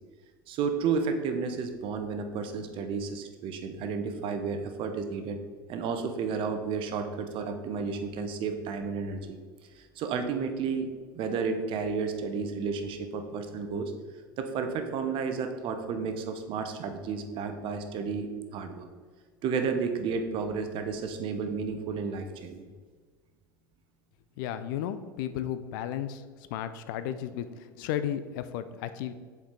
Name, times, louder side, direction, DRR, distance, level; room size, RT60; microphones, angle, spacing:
voice 1, 0.5-5.4 5.7-9.4 9.8-10.9 11.1-13.9 14.4-18.3 18.5-18.9 19.4-22.7, right 5 dB, 45° right, 7 dB, 0.8 m, -32 dB
voice 2, 24.4-29.1, left 10 dB, 60° left, 11 dB, 0.5 m, -34 dB
7.1 x 4.7 x 3.7 m, 1.6 s
figure-of-eight pair, 75°, 12 cm